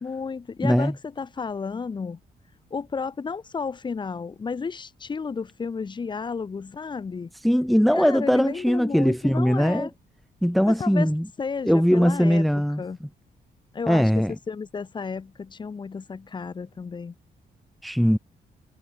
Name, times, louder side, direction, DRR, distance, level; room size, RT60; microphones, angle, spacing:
voice 1, 0.0-2.2 2.7-7.3 7.9-9.9 10.7-11.1 11.4-13.0 13.7-17.1, left 5 dB, 30° left, 2.7 m, -32 dB
voice 2, 0.6-0.9 7.4-9.9 10.4-11.3 11.7-13.1 13.9-14.3 17.8-18.2, equal, ahead, 1.3 m, -20 dB
wide cardioid pair, 165°, 17 cm